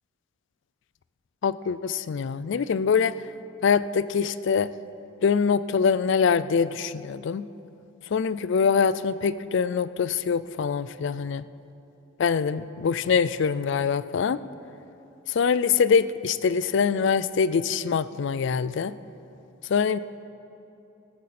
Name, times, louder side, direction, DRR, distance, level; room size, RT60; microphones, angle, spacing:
voice 1, 1.4-3.2 3.6-4.7 5.2-7.5 8.1-11.4 12.2-14.4 15.3-18.9 19.7-20.0, left 6 dB, 60° left, 16 dB, 0.4 m, -24 dB
14.5 x 14.0 x 4.3 m, 2.8 s
head